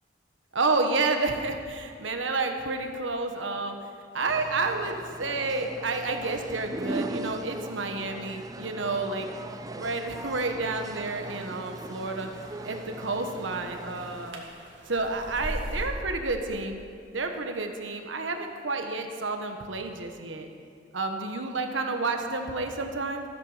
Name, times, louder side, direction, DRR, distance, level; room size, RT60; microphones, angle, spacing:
voice 1, 0.5-3.8 4.1-9.3 9.8-14.4 14.9-16.8 17.1-20.5 20.9-23.2, right 3 dB, 90° right, 5 dB, 1.3 m, -30 dB
sound 1, 4.3-14.3, right 2 dB, 20° right, 0.4 m, -39 dB
sound 2, 10.7-15.9, right 1 dB, 70° right, 2.2 m, -41 dB
13.5 x 13.5 x 5.1 m, 2.3 s
head